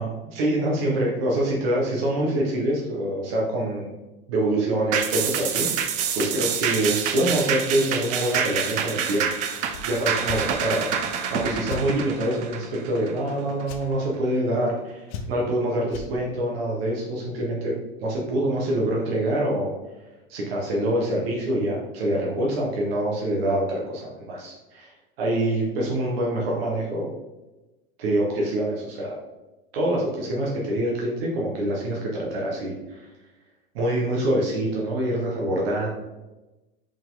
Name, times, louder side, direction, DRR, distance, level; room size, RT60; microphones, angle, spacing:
voice 1, 0.0-3.9 4.3-9.4 9.8-10.9 11.3-19.7 20.3-24.9 25.2-27.1 28.0-29.2 29.7-33.1 33.7-35.9, right 1 dB, 75° right, -3 dB, 1.6 m, -25 dB
sound 1, 4.9-13.6 14.0-14.1, right 7 dB, 25° right, 0.4 m, -27 dB
sound 2, 9.7-9.9 10.2-10.4 11.7-11.9 13.6-13.8 15.1-15.5 15.9-16.1, left 5 dB, 50° left, 0.9 m, -35 dB
5.3 x 4.8 x 3.9 m, 1.1 s
supercardioid pair, 165°, 30 cm